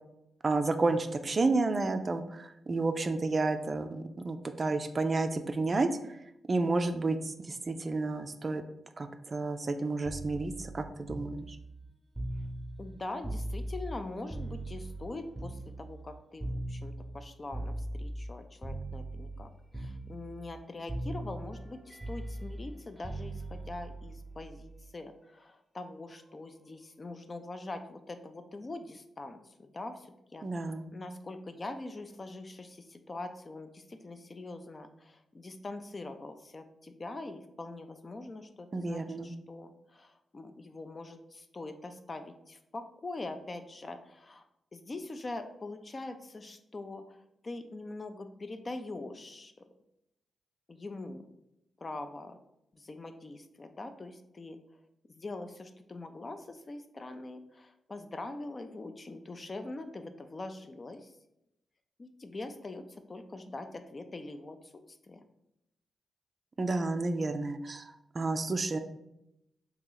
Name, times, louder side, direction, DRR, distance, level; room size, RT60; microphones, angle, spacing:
voice 1, 0.4-6.2 6.5-8.6 9.0-11.5 30.4-30.9 38.7-39.3 66.6-68.8, right 3 dB, 40° right, 8 dB, 0.3 m, -31 dB
sound 1, 10.0-14.0 14.3-18.3 18.6-19.5 19.7-20.6 20.9-24.9 26.1-26.3, right 1 dB, 5° right, 0.8 m, -40 dB
voice 2, 12.8-30.5 30.9-44.4 44.7-49.5 50.7-51.3 51.8-52.4 52.7-54.6 55.1-61.1 62.0-65.2, left 2 dB, 40° left, 7 dB, 0.4 m, -43 dB
2.9 x 2.8 x 3.8 m, 0.84 s
cardioid pair, 60°, 0 cm